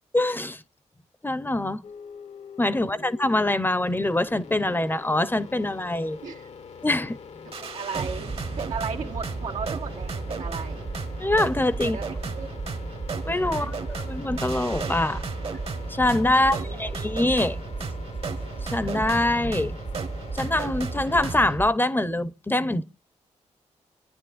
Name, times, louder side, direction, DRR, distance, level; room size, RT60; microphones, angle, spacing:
voice 1, 0.1-0.6 1.2-1.8 2.6-6.2 6.8-7.2 11.2-12.0 13.2-15.3 15.9-17.6 18.6-19.8 20.3-22.8, left 1 dB, 15° left, 0.8 m, -24 dB
sound 1, 1.8-21.4, left 6 dB, 65° left, 1.1 m, -45 dB
voice 2, 2.7-3.1 6.2-6.5 7.5-10.9 11.8-12.5 13.5-13.7 16.4-16.9, right 6 dB, 90° right, 2.1 m, -36 dB
sound 2, 7.5-21.7, right 4 dB, 50° right, 1.3 m, -33 dB
28.0 x 9.7 x 2.5 m
cardioid pair, 70°, 12 cm